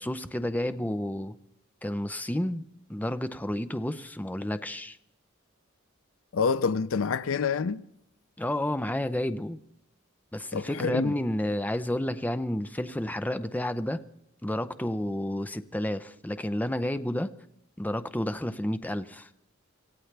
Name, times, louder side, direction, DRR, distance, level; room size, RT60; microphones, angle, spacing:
voice 1, 0.0-1.4 1.8-2.6 2.9-5.0 8.4-9.6 10.3-14.0 14.4-17.3 17.8-19.3, left 1 dB, 10° left, 0.6 m, -30 dB
voice 2, 6.3-7.8 10.5-11.1, left 5 dB, 75° left, 0.5 m, -27 dB
26.0 x 16.0 x 3.3 m
head